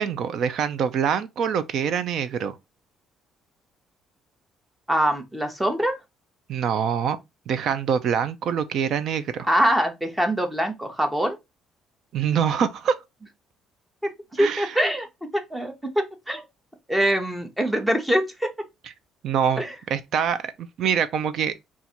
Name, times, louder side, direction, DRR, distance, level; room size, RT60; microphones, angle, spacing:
voice 1, 0.0-2.6 6.5-7.2 7.5-9.5 12.1-13.0 14.4-14.8 19.2-19.6 19.9-21.5, right 7 dB, 50° right, 0.5 m, -25 dB
voice 2, 4.9-6.0 9.5-11.4 14.3-16.4 16.9-18.5 19.6-19.8, right 1 dB, 5° right, 0.7 m, -24 dB
4.0 x 2.4 x 4.3 m
cardioid pair, 165°, 0 cm